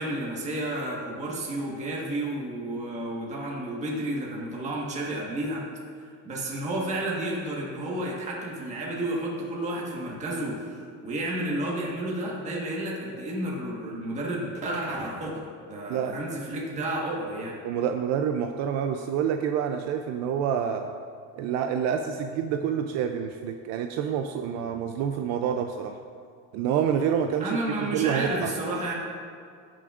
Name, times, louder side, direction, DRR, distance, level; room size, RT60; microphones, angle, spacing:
voice 1, 0.0-5.6 6.0-17.6 27.4-28.9, right 1 dB, 20° right, -4 dB, 1.4 m, -31 dB
voice 2, 17.6-20.9 21.4-26.0 26.5-27.6 27.9-28.5, right 8 dB, 55° right, 6 dB, 0.5 m, -27 dB
16.5 x 6.2 x 2.5 m, 2.3 s
cardioid pair, 170°, 31 cm